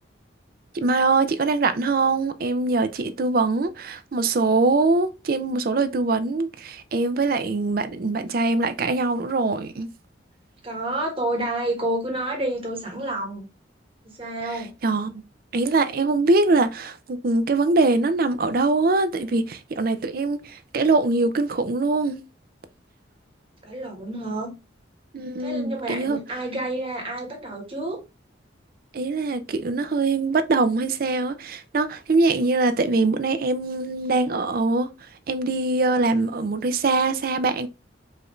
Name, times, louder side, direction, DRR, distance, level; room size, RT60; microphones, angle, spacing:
voice 1, 0.7-9.9 14.8-15.2 15.5-22.2 25.1-26.2 28.9-34.9 35.3-37.7, right 3 dB, 50° right, 0.4 m, -23 dB
voice 2, 10.6-13.5 14.0-14.7 23.6-24.5 25.4-28.0, right 1 dB, 30° right, 1.4 m, -29 dB
4.8 x 2.6 x 3.0 m
head